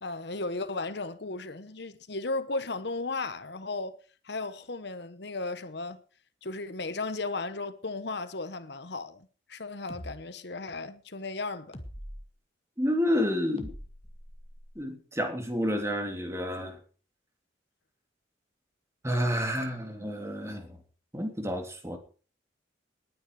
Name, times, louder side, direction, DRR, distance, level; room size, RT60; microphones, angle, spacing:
voice 1, 0.0-4.0 4.2-6.0 6.4-11.8, left 3 dB, 60° left, 1.1 m, -35 dB
sound 1, 9.9-10.1 11.7-12.3 13.6-14.7, equal, 30° left, 1.9 m, -43 dB
voice 2, 12.8-13.7 14.7-16.8 19.0-20.8 21.1-22.0, equal, 15° right, 3.1 m, -30 dB
19.5 x 9.7 x 4.9 m
head